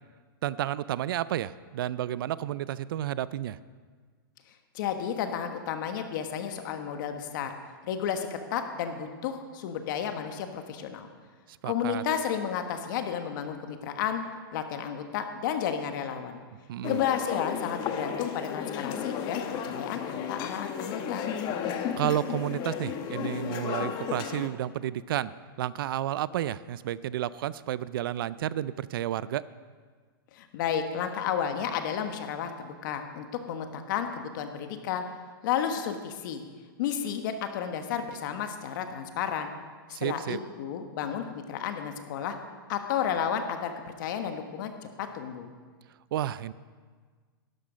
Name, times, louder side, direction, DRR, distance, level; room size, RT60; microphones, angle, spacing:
voice 1, 0.4-3.6 11.6-12.0 16.7-17.0 22.0-25.3 25.6-29.4 39.9-40.4 46.1-46.5, right 12 dB, 65° right, 18 dB, 0.4 m, -31 dB
voice 2, 4.7-7.5 7.8-11.1 11.6-14.2 14.5-16.4 16.9-21.3 30.3-35.0 35.4-36.4 36.8-39.5 40.0-42.4 42.7-43.7 44.0-44.7 45.0-45.5, left 8 dB, 55° left, 7 dB, 1.4 m, -32 dB
sound 1, 16.8-24.5, left 8 dB, 35° left, 1.0 m, -33 dB
12.0 x 11.5 x 5.1 m, 1.5 s
hypercardioid pair, 130°, 12 cm